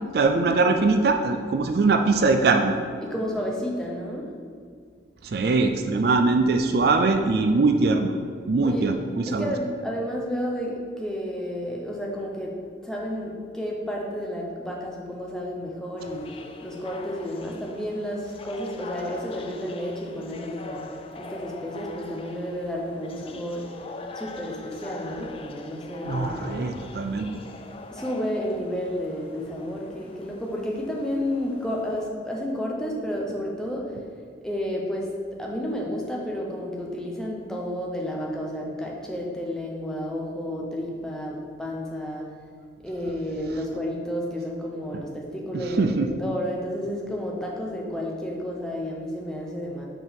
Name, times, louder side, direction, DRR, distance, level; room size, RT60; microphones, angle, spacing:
voice 1, 0.1-2.8 5.2-8.2 8.5-9.5 26.1-27.3 44.9-45.0 45.5-46.1, right 3 dB, 55° right, 6 dB, 0.4 m, -22 dB
voice 2, 3.0-4.3 8.6-8.9 9.3-12.5 12.8-20.8 21.2-23.7 24.1-26.6 27.9-33.9 34.4-35.1 35.4-42.3 42.8-45.9 46.2-49.9, equal, 5° left, -2 dB, 0.8 m, -31 dB
sound 1, 16.0-32.1, left 3 dB, 30° left, 0.3 m, -42 dB
5.9 x 4.5 x 5.3 m, 2.1 s
head